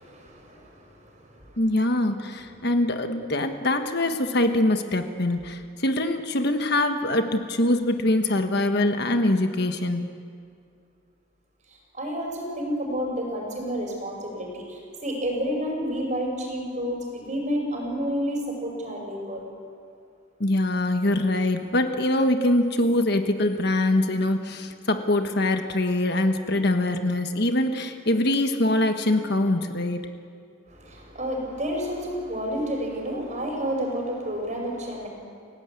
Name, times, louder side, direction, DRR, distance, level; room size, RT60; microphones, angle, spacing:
voice 1, 0.0-1.6 11.7-19.5 30.7-35.1, equal, 35° right, 1 dB, 5.5 m, -30 dB
voice 2, 1.6-10.1 20.4-30.0, left 1 dB, 50° left, 6 dB, 1.4 m, -23 dB
29.5 x 17.5 x 8.4 m, 2.3 s
head